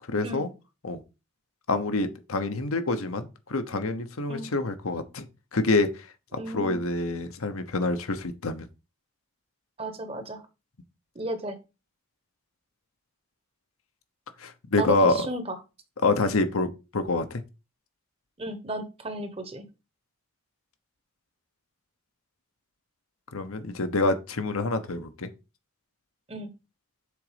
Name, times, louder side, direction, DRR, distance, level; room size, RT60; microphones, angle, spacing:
voice 1, 0.1-0.5 0.8-1.0 1.7-5.2 5.5-5.9 6.5-8.7 14.4-15.2 16.0-17.4 23.3-25.3, left 3 dB, 80° left, 1.0 m, -26 dB
voice 2, 6.3-6.8 9.8-10.4 11.1-11.6 14.8-15.6 18.4-19.7 26.3-26.5, right 1 dB, 25° right, 0.9 m, -34 dB
6.7 x 3.9 x 5.0 m
head